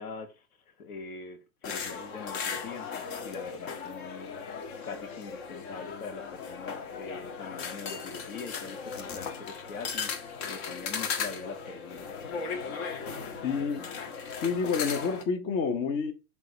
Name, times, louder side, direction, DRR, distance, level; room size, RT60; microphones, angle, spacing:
voice 1, 0.0-4.3 4.8-12.1, left 5 dB, 80° left, 2.0 m, -43 dB
sound 1, 1.6-15.2, left 5 dB, 45° left, 1.6 m, -37 dB
voice 2, 13.4-13.9 14.4-16.1, left 5 dB, 30° left, 0.9 m, -29 dB
6.6 x 3.6 x 5.2 m
hypercardioid pair, 125°, 43 cm